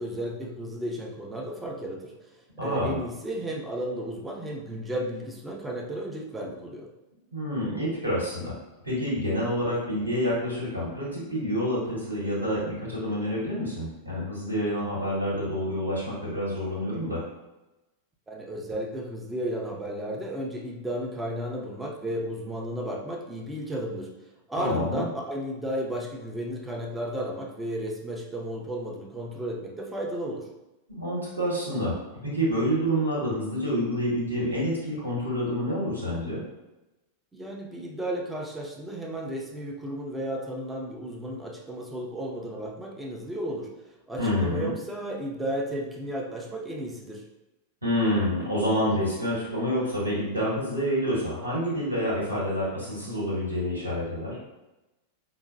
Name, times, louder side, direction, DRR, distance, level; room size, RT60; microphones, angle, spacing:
voice 1, 0.0-6.9 18.3-24.1 24.5-30.5 37.3-43.7 44.1-47.2, right 1 dB, 10° right, -1 dB, 0.6 m, -33 dB
voice 2, 2.6-3.0 7.3-8.5 8.8-17.2 24.6-25.1 30.9-32.0 32.2-36.4 44.2-44.7 47.8-54.4, equal, 80° right, -5 dB, 1.4 m, -28 dB
4.8 x 2.2 x 2.5 m, 1.0 s
figure-of-eight pair, 90°, 0 cm